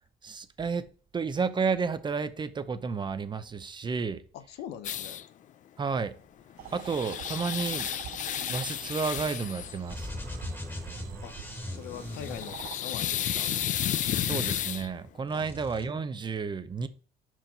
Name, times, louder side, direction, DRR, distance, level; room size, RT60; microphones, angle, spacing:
voice 1, 0.2-0.8 1.1-4.2 5.8-6.1 6.7-7.9 8.5-10.1 14.2-16.9, right 5 dB, 25° right, 0.7 m, -31 dB
voice 2, 4.3-5.2 11.2-11.3 11.7-13.5 15.3-15.5, left 10 dB, 85° left, 0.8 m, -42 dB
sound 1, 4.8-5.2 6.5-9.8 12.0-14.9, left 10 dB, 50° left, 0.4 m, -32 dB
sound 2, 6.6-12.8, right 13 dB, 65° right, 0.4 m, -46 dB
sound 3, 9.9-13.2 13.9-15.0 15.3-15.9, left 1 dB, 10° left, 1.7 m, -40 dB
5.8 x 4.6 x 5.2 m
cardioid pair, 110°, 17 cm